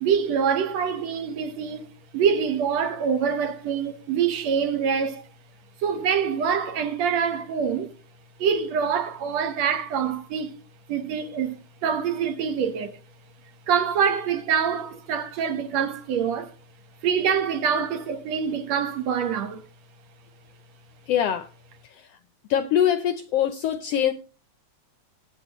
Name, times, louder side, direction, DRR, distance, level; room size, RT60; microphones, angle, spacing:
voice 1, 0.0-5.2 5.8-7.9 8.4-10.5 10.9-12.9 13.7-16.5 17.0-19.6, right 7 dB, 65° right, 2.3 m, -25 dB
voice 2, 21.1-21.5 21.9-22.0 22.5-24.1, left 10 dB, 75° left, 1.5 m, -23 dB
21.5 x 9.1 x 3.0 m
omnidirectional pair, 3.5 m